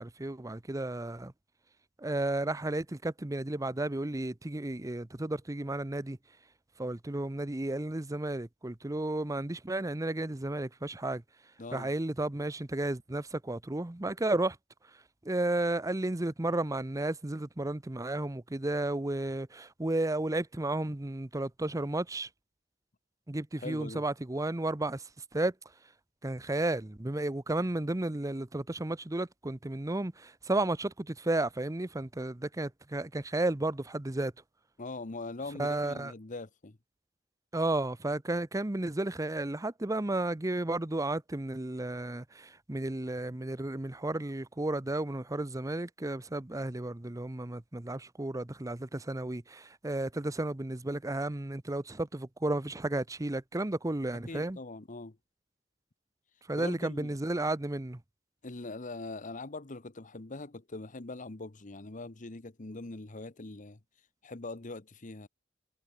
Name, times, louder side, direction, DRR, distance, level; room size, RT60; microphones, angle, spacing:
voice 1, 0.0-1.3 2.0-6.2 6.8-11.2 11.7-14.6 15.2-22.3 23.3-25.0 25.3-25.5 26.2-34.3 35.6-36.1 37.5-54.6 56.5-58.0, right 2 dB, 20° right, 0.7 m, -33 dB
voice 2, 11.6-11.9 23.6-24.0 34.8-36.8 54.3-55.2 56.5-57.2 58.4-63.8 64.2-65.3, left 2 dB, 45° left, 1.1 m, -42 dB
head